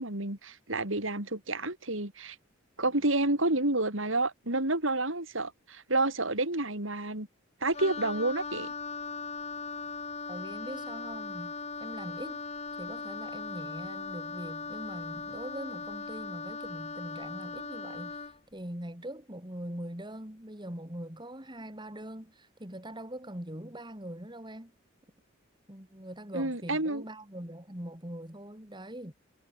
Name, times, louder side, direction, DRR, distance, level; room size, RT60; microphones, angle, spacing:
voice 1, 0.0-2.4 2.8-7.3 7.6-8.7 26.3-27.0, right 2 dB, 75° right, 5.5 m, -29 dB
Wind instrument woodwind instrument, 7.7-18.4, left 4 dB, 30° left, 3.9 m, -39 dB
voice 2, 10.3-11.5 11.8-12.4 12.8-24.7 25.7-29.1, right 1 dB, 20° right, 4.0 m, -42 dB
head